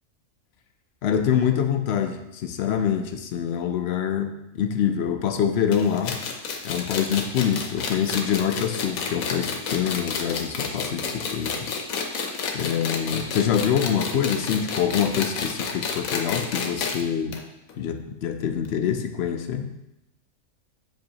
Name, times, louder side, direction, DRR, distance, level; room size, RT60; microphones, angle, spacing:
voice 1, 1.0-6.2 6.6-11.8 12.5-17.4 17.8-19.7, left 8 dB, 65° left, 7 dB, 0.7 m, -25 dB
sound 1, 5.7-17.0 17.3-17.4 17.7-17.8 18.6-18.7, left 5 dB, 85° left, 1.2 m, -30 dB
7.7 x 5.1 x 2.8 m, 0.91 s
omnidirectional pair, 1.4 m